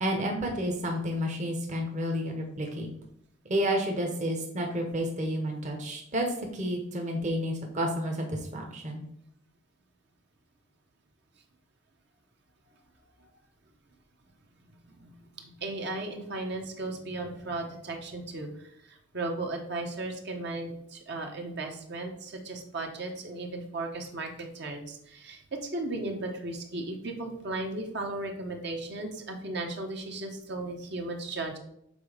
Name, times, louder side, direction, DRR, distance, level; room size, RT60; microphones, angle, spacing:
voice 1, 0.0-2.9 3.5-6.3 6.5-9.0, equal, 40° right, 2 dB, 1.1 m, -30 dB
voice 2, 14.8-24.3 24.5-31.6, right 2 dB, 60° right, 2 dB, 1.1 m, -36 dB
6.9 x 4.3 x 5.1 m, 0.74 s
head